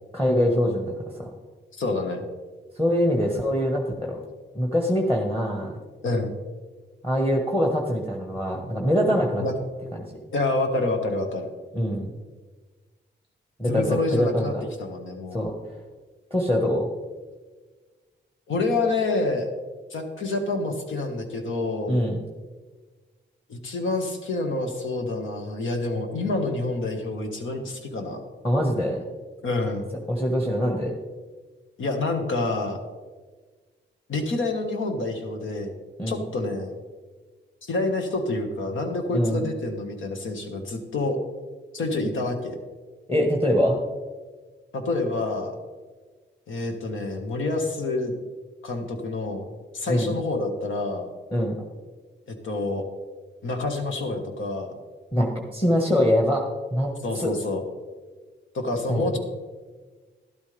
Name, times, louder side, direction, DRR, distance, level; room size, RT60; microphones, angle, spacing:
voice 1, 0.1-1.3 2.8-4.2 4.5-5.7 7.0-9.4 9.9-10.0 11.7-12.1 13.6-14.5 15.3-15.5 16.3-16.9 21.9-22.2 28.4-29.0 30.1-31.0 36.0-36.2 39.1-39.4 43.1-43.8 49.9-50.1 51.3-51.6 55.1-56.4 56.7-56.9 57.2-57.3 58.9-59.2, equal, 10° left, 0 dB, 1.5 m, -23 dB
voice 2, 1.7-2.2 6.0-6.3 9.4-9.5 10.3-11.5 13.7-14.5 14.8-15.4 18.5-19.5 19.9-22.1 23.5-28.2 29.4-29.9 31.8-32.8 34.1-35.7 36.1-36.7 37.6-41.2 41.7-42.6 44.7-45.5 46.5-48.1 48.6-49.5 49.7-51.1 52.3-52.8 53.4-54.7 57.0-57.6 58.5-59.2, left 2 dB, 85° left, 4 dB, 1.7 m, -27 dB
12.5 x 12.0 x 3.4 m, 1.4 s
cardioid pair, 95°, 20 cm